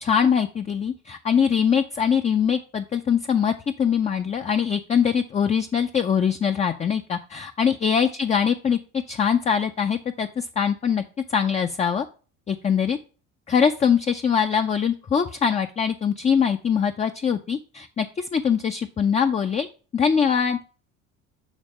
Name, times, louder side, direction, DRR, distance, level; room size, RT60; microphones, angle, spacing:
voice 1, 0.0-11.0 11.3-12.1 12.5-13.0 13.5-19.7 19.9-20.6, left 7 dB, 20° left, 7 dB, 0.4 m, -22 dB
7.2 x 3.4 x 5.2 m, 0.38 s
hypercardioid pair, 65°, 39 cm